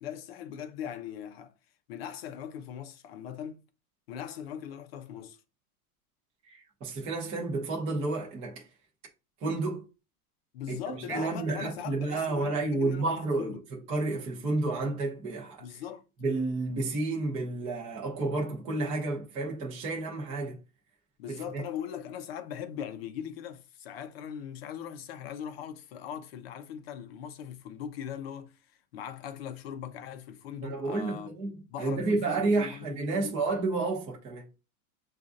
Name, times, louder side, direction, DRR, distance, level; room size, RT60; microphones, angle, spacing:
voice 1, 0.0-1.5 1.9-3.6 4.1-5.4 10.5-13.6 15.6-16.0 21.2-31.3 31.7-33.4, left 9 dB, 40° left, 0.6 m, -40 dB
voice 2, 6.4-8.6 9.4-9.8 10.7-13.6 13.9-15.8 16.2-20.6 21.3-21.6 30.6-34.5, right 3 dB, 15° right, 0.6 m, -31 dB
7.1 x 2.5 x 2.5 m
supercardioid pair, 165°, 45 cm